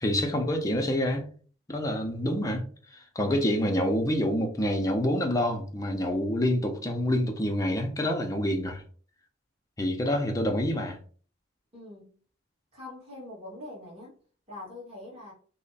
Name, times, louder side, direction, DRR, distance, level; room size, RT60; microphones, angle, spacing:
voice 1, 0.0-1.3 1.7-2.6 2.9-8.8 9.8-11.0, left 1 dB, 15° left, 0.6 m, -27 dB
voice 2, 11.7-12.2 12.7-14.2 14.5-15.3, left 2 dB, 30° right, 1.7 m, -43 dB
3.2 x 2.1 x 3.9 m
head